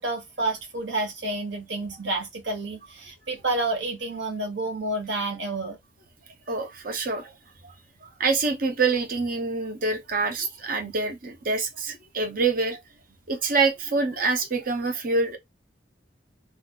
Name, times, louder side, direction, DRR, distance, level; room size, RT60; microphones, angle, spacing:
voice 1, 0.0-5.8, right 2 dB, 70° right, 1.3 m, -29 dB
voice 2, 6.5-7.4 7.6-7.7 8.0-12.8 13.3-15.4, right 4 dB, 50° right, 0.7 m, -26 dB
2.5 x 2.5 x 3.7 m
head